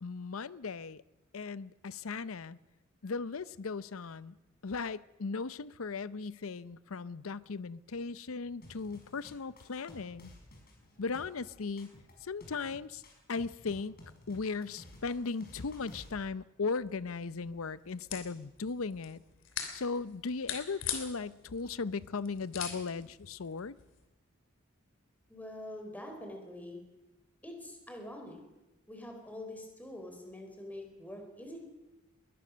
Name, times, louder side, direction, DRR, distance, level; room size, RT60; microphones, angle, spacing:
voice 1, 0.0-1.0 1.3-2.6 3.0-4.3 4.6-10.3 11.0-11.9 12.2-13.0 13.3-13.9 14.3-19.2 19.7-23.7, left 4 dB, 80° left, 0.7 m, -37 dB
sound 1, 8.6-16.2, left 1 dB, 45° left, 5.7 m, -53 dB
sound 2, 16.8-24.1, left 8 dB, 60° left, 3.1 m, -43 dB
voice 2, 25.3-26.8 27.4-28.4 28.9-31.6, left 1 dB, 10° left, 4.2 m, -45 dB
21.5 x 19.0 x 6.3 m
head